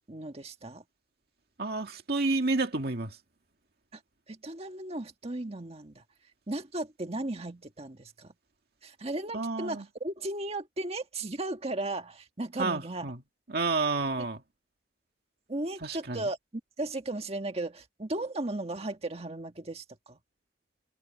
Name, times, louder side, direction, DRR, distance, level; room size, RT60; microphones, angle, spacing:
voice 1, 0.1-0.8 3.9-4.0 4.3-6.0 6.5-8.3 8.8-13.1 14.2-14.3 15.5-16.4 16.8-20.2, right 2 dB, 35° right, 1.7 m, -36 dB
voice 2, 1.6-3.2 9.3-9.9 12.6-13.2 13.5-14.4 15.8-16.2, right 3 dB, 60° right, 2.2 m, -30 dB
head